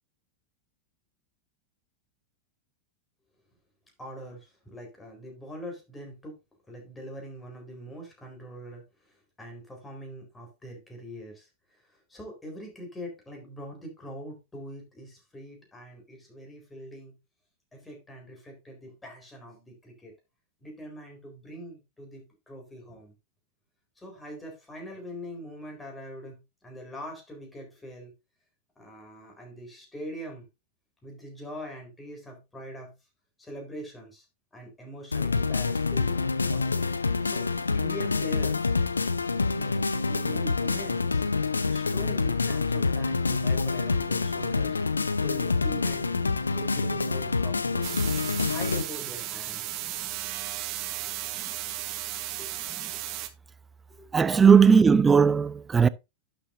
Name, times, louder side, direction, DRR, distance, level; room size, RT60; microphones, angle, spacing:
voice 1, 4.0-6.3 6.7-17.1 17.7-20.1 20.6-23.1 24.0-28.1 28.8-30.4 31.0-32.9 33.4-34.2 34.5-36.8 37.2-37.5 37.7-38.6 39.5-41.3 41.6-44.8 45.2-46.1 46.5-49.8 51.0-51.1 52.4-52.5 53.9-54.1, equal, 10° left, 4.2 m, -43 dB
sound 1, 35.1-48.8, left 4 dB, 75° left, 0.6 m, -27 dB
sound 2, 47.8-53.3, right 14 dB, 40° right, 0.9 m, -35 dB
voice 2, 54.1-55.9, right 6 dB, 15° right, 0.5 m, -18 dB
11.5 x 6.9 x 2.6 m
figure-of-eight pair, 90°, 0 cm